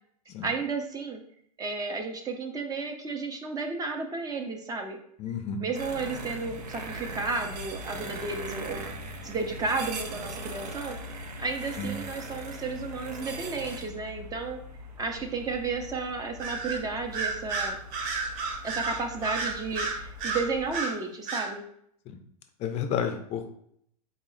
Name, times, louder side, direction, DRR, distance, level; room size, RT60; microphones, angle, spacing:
voice 1, 0.4-1.2 1.6-5.0 5.6-8.8 9.2-11.0 11.4-14.6 15.0-17.8 18.6-21.6, right 4 dB, 20° right, 4 dB, 0.5 m, -33 dB
voice 2, 5.2-5.6 11.8-11.9 22.1-22.2 22.6-23.5, left 7 dB, 35° left, 6 dB, 0.4 m, -31 dB
sound 1, 5.7-20.8, right 1 dB, 90° right, 0.6 m, -40 dB
Bird vocalization bird call bird song, 16.4-16.8 17.1-21.0 21.3-21.5, right 4 dB, 45° right, 0.8 m, -31 dB
3.9 x 2.0 x 3.8 m, 0.69 s
hypercardioid pair, 105°, 20 cm